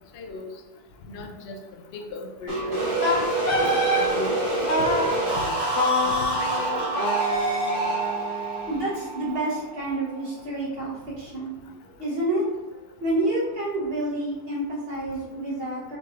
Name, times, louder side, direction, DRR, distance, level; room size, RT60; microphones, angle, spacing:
voice 1, 0.1-0.5 1.1-1.6 1.9-3.2 3.6-5.6 6.0-6.6 6.9-7.0, left 3 dB, 65° left, 3 dB, 0.8 m, -37 dB
sound 1, 2.5-10.2, right 2 dB, 40° right, 1.4 m, -27 dB
Wind instrument woodwind instrument, 3.0-4.1 4.7-5.1 5.8-8.8, left 1 dB, 85° left, 1.2 m, -26 dB
voice 2, 8.7-11.5 12.0-16.0, right 1 dB, 55° right, -6 dB, 1.2 m, -29 dB
6.5 x 3.1 x 2.4 m, 1.1 s
omnidirectional pair, 1.2 m